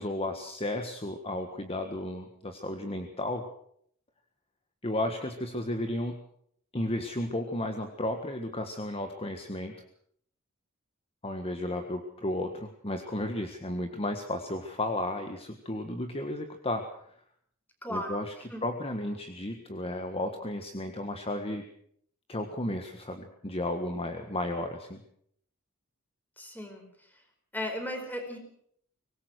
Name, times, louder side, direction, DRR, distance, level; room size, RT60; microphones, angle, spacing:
voice 1, 0.0-3.4 4.8-6.2 6.7-9.7 11.2-17.1 17.9-18.3 18.6-21.7 22.3-25.0, left 1 dB, 30° left, 6 dB, 1.6 m, -33 dB
voice 2, 17.8-18.1 18.5-18.6 26.4-26.9 27.5-28.4, left 1 dB, 10° left, 5 dB, 4.8 m, -35 dB
24.0 x 19.5 x 6.5 m, 0.66 s
head